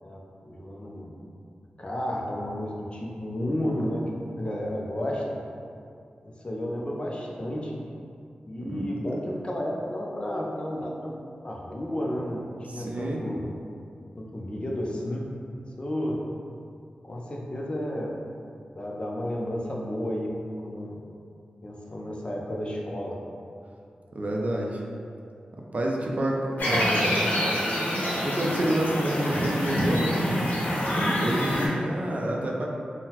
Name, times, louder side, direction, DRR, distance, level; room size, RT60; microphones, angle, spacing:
voice 1, 0.0-1.1 1.8-5.2 6.2-7.7 8.5-11.2 11.4-12.5 12.7-13.4 14.1-15.3 15.8-16.2 17.0-18.2 18.8-20.3 20.6-21.0 21.6-23.2, equal, 35° left, -2 dB, 0.5 m, -32 dB
voice 2, 12.7-13.2 24.1-24.8 25.7-27.3 28.2-30.2 31.2-32.7, right 1 dB, 50° right, -1 dB, 0.4 m, -28 dB
sound 1, 26.6-31.7, equal, 70° left, 0.7 m, -26 dB
3.7 x 2.0 x 2.8 m, 2.4 s
wide cardioid pair, 65°, 3 cm